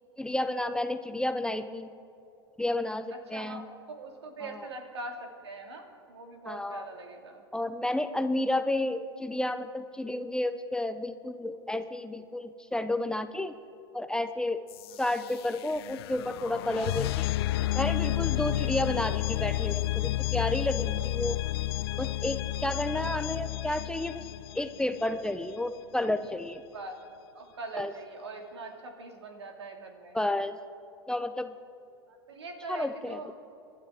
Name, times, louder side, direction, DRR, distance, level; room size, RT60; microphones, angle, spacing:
voice 1, 0.2-1.9 2.6-3.7 4.4-4.5 6.5-6.9 7.5-13.5 13.9-14.6 15.0-17.3 17.7-21.4 22.0-24.2 24.5-26.6 27.8-27.9 30.1-30.6 31.1-31.5 32.7-33.3, left 1 dB, 5° left, 10 dB, 0.6 m, -31 dB
voice 2, 3.1-7.4 14.8-15.0 22.7-23.1 26.7-27.0 27.3-30.2 32.1-33.3, right 2 dB, 85° right, 3 dB, 2.2 m, -42 dB
sound 1, 14.7-25.5, left 16 dB, 65° left, 0.4 m, -31 dB
26.5 x 12.0 x 3.6 m, 2.7 s
hypercardioid pair, 95°, 14 cm